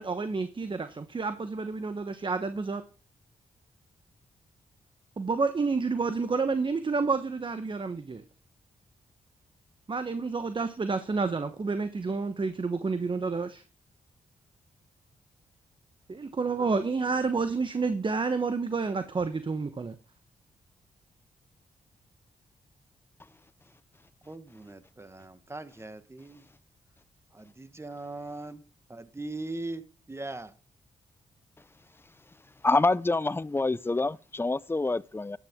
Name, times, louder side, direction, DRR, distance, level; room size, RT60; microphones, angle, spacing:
voice 1, 0.0-2.8 5.2-8.2 9.9-13.6 16.1-19.9, right 4 dB, 35° right, 1.0 m, -29 dB
voice 2, 24.3-26.5 27.3-28.6 28.9-30.5, right 2 dB, 20° right, 1.4 m, -40 dB
voice 3, 32.6-35.4, left 2 dB, 15° left, 0.5 m, -26 dB
13.0 x 9.5 x 3.7 m
supercardioid pair, 50°, 14 cm